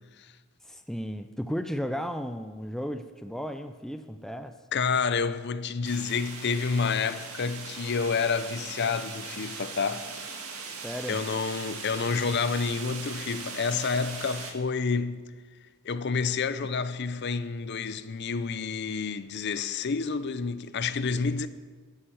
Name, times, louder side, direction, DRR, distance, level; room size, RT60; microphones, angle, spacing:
voice 1, 0.6-4.6 10.8-11.2, equal, ahead, 0.4 m, -34 dB
voice 2, 4.7-10.1 11.1-15.2 15.8-21.5, left 5 dB, 50° left, 0.5 m, -29 dB
sound 1, 5.8-14.5, right 5 dB, 75° right, 1.9 m, -40 dB
11.5 x 8.8 x 7.7 m
head